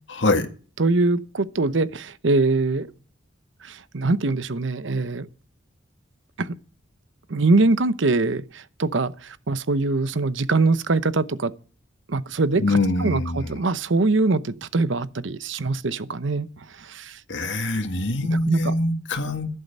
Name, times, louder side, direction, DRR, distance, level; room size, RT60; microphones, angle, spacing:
voice 1, 0.1-0.5 12.6-13.5 17.3-19.5, left 2 dB, 75° left, 1.8 m, -23 dB
voice 2, 0.8-2.9 3.6-5.3 6.4-6.5 7.3-11.5 12.1-16.5 16.8-17.2 18.3-18.7, right 3 dB, 85° right, 0.8 m, -23 dB
11.5 x 11.5 x 5.4 m
head